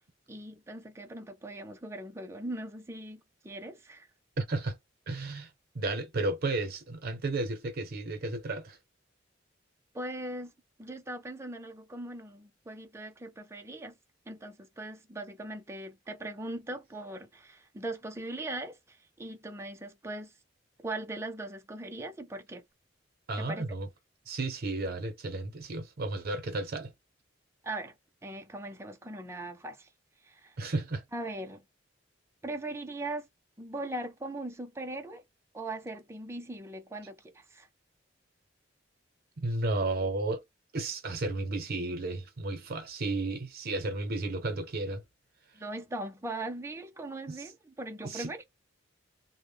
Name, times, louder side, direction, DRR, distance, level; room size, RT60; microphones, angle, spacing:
voice 1, 0.3-4.1 9.9-10.5 10.8-14.0 14.3-20.3 20.8-22.6 23.4-23.6 27.6-27.9 28.2-29.9 30.2-30.6 31.1-31.6 32.4-33.3 33.6-35.2 35.5-37.7 45.5-48.4, right 2 dB, 15° right, 0.4 m, -40 dB
voice 2, 4.4-4.8 5.1-5.5 5.7-8.8 23.3-23.9 24.3-26.9 30.6-31.0 39.4-40.4 40.7-45.0 47.3-47.4 48.0-48.3, right 2 dB, 55° right, 0.6 m, -33 dB
2.0 x 2.0 x 3.2 m
head